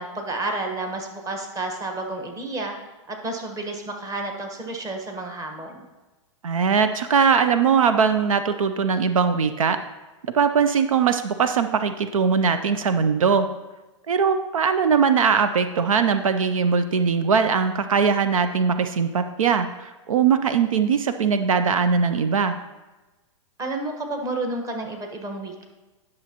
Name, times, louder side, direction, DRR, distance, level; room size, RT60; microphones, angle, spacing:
voice 1, 0.0-2.7 3.1-5.9 23.6-25.6, right 2 dB, 20° right, 3 dB, 1.2 m, -31 dB
voice 2, 6.4-9.8 10.3-13.5 14.1-22.5, right 6 dB, 85° right, 10 dB, 0.5 m, -21 dB
10.5 x 6.3 x 2.9 m, 1.1 s
hypercardioid pair, 120°, 17 cm